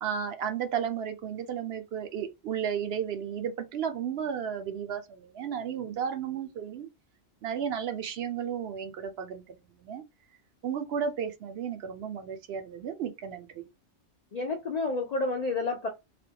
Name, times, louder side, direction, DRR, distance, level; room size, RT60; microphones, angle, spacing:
voice 1, 0.0-6.9 7.4-10.0 10.6-13.7, right 8 dB, 65° right, 0.8 m, -33 dB
voice 2, 14.3-15.9, left 3 dB, 60° left, 0.4 m, -30 dB
3.3 x 2.2 x 2.7 m
omnidirectional pair, 1.2 m